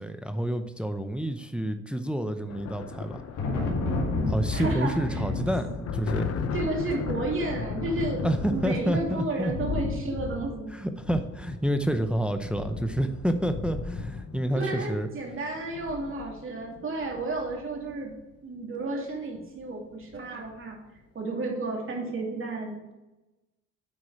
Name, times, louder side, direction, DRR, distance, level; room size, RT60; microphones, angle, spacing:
voice 1, 0.0-3.2 4.3-6.3 8.2-9.5 10.7-15.1, right 1 dB, 5° right, 8 dB, 0.6 m, -29 dB
sound 1, 2.5-18.2 19.4-19.6 19.9-20.6, left 6 dB, 55° left, 0.8 m, -38 dB
Thunder, 2.8-12.2, left 2 dB, 80° left, 2.1 m, -33 dB
voice 2, 4.5-5.0 6.5-8.2 8.5-10.7 14.5-18.1 18.4-20.8 21.1-23.0, right 2 dB, 45° right, -1 dB, 2.6 m, -32 dB
8.5 x 4.7 x 4.8 m, 1.0 s
cardioid pair, 90°, 30 cm